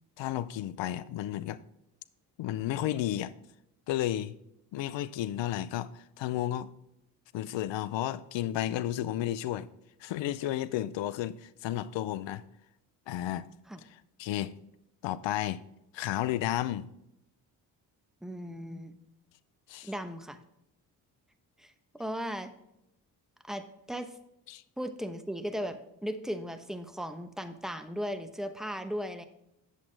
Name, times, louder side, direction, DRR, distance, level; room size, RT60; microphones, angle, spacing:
voice 1, 0.2-1.6 2.4-3.3 3.9-4.3 4.7-6.7 7.3-9.7 10.0-12.4 13.1-13.5 13.8-14.5 15.0-15.6 15.9-16.9 19.7-19.9 24.5-24.6, left 12 dB, 65° left, 0.6 m, -32 dB
voice 2, 18.2-18.9 19.8-20.4 21.6-22.5 23.4-24.1 24.8-29.2, equal, ahead, 0.9 m, -37 dB
8.4 x 7.2 x 3.3 m
hypercardioid pair, 45°, 48 cm